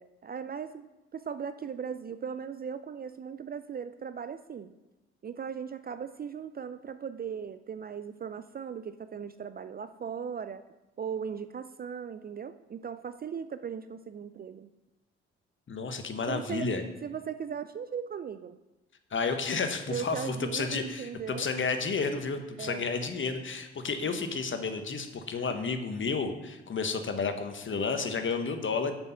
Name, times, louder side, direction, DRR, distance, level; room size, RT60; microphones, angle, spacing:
voice 1, 0.0-4.8 5.2-10.6 11.0-14.7 16.3-16.7 17.0-18.6 19.9-21.5 22.6-22.9 24.0-24.4 25.4-25.5, right 7 dB, 30° right, 11 dB, 0.4 m, -38 dB
voice 2, 15.7-16.8 19.1-28.9, left 4 dB, 40° left, 7 dB, 1.2 m, -31 dB
7.1 x 6.2 x 5.7 m, 1.1 s
hypercardioid pair, 45°, 31 cm